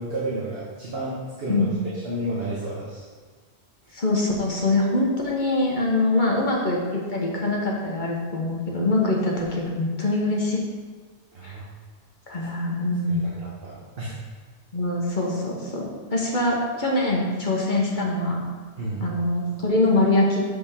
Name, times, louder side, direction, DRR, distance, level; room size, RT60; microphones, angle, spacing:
voice 1, 0.0-1.7 2.0-3.0 11.3-11.6 13.1-14.1 18.8-19.0, right 1 dB, 65° right, -6 dB, 1.2 m, -31 dB
voice 2, 3.9-10.6 11.4-11.5 12.3-13.2 14.7-18.4 19.0-20.4, left 2 dB, 50° left, -2 dB, 1.1 m, -23 dB
6.8 x 5.0 x 3.5 m, 1.5 s
omnidirectional pair, 1.1 m